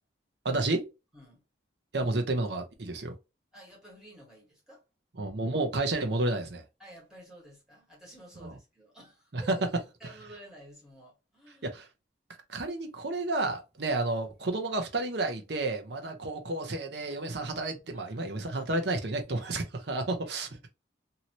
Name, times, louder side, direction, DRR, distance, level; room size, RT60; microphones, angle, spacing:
voice 1, 0.4-0.9 1.9-3.1 5.2-6.6 8.4-8.5 9.3-9.6 11.6-11.9 12.5-20.7, right 2 dB, 65° right, 0.7 m, -31 dB
voice 2, 3.5-4.8 6.8-11.8 16.0-16.4 17.9-18.3 20.4-20.6, right 1 dB, 5° right, 1.5 m, -52 dB
2.8 x 2.8 x 2.9 m
head